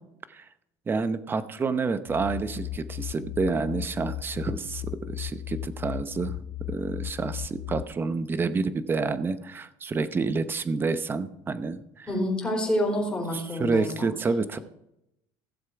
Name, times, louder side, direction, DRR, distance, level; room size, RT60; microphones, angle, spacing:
voice 1, 0.9-12.1 13.3-14.6, right 4 dB, 20° right, 12 dB, 0.8 m, -29 dB
sound 1, 2.1-7.8, left 14 dB, 60° left, 0.6 m, -36 dB
voice 2, 12.1-14.1, left 1 dB, 10° left, -1 dB, 4.0 m, -27 dB
16.0 x 7.4 x 4.7 m, 0.83 s
cardioid pair, 135°, 10 cm